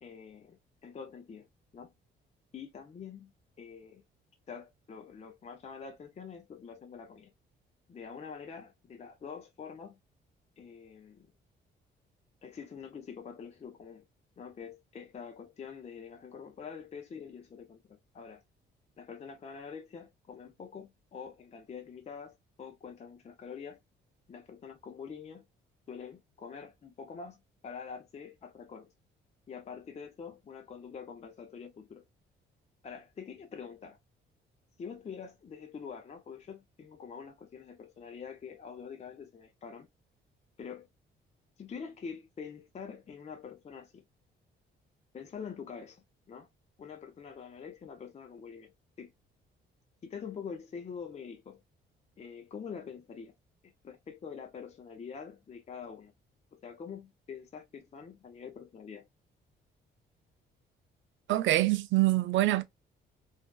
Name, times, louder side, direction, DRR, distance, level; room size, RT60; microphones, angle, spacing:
voice 1, 0.0-1.5 1.7-1.9 2.5-3.3 3.6-4.0 4.5-7.3 7.9-10.0 10.6-11.3 12.4-14.1 14.4-18.4 19.0-23.8 24.3-25.4 25.9-28.9 29.5-32.0 32.8-34.0 34.8-39.9 40.6-40.9 41.6-44.0 45.1-46.5 46.8-48.7 49.0-49.1 50.0-51.6 52.2-53.3 53.6-56.1 56.5-59.1, left 6 dB, 35° left, 0.5 m, -45 dB
voice 2, 61.3-62.6, right 16 dB, 75° right, 0.4 m, -25 dB
2.5 x 2.3 x 2.2 m
cardioid pair, 90°, 20 cm